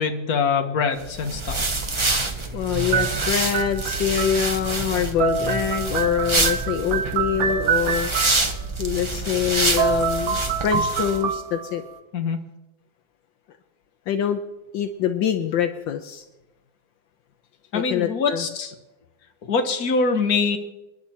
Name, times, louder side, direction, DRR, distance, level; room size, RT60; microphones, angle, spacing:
voice 1, 0.0-1.6 12.1-12.4 17.7-18.7 19.4-20.6, left 5 dB, 50° left, 5 dB, 1.7 m, -23 dB
sound 1, 1.0-11.2, right 3 dB, 20° right, 0.8 m, -26 dB
voice 2, 2.5-8.1 8.8-11.8 14.1-14.4 14.7-16.2 17.7-18.4, left 9 dB, 75° left, 7 dB, 1.5 m, -25 dB
sound 2, 2.9-4.7 5.0-8.6 9.5-9.6 9.8-11.9, right 7 dB, 60° right, 1.1 m, -26 dB
28.5 x 9.9 x 4.4 m, 1.0 s
omnidirectional pair, 2.1 m